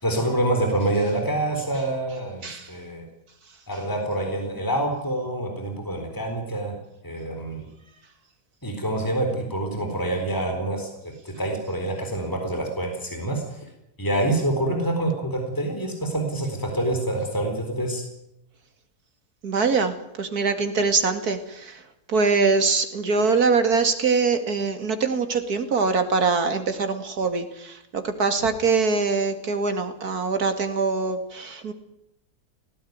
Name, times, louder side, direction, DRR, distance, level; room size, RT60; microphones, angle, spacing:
voice 1, 0.0-3.0 3.7-6.8 7.0-7.6 8.6-10.9 11.2-13.6 14.0-18.0, right 1 dB, 10° left, 3 dB, 4.1 m, -26 dB
voice 2, 19.4-21.8 22.1-31.7, right 4 dB, 70° right, 8 dB, 2.8 m, -23 dB
18.5 x 16.5 x 9.5 m, 0.84 s
omnidirectional pair, 1.7 m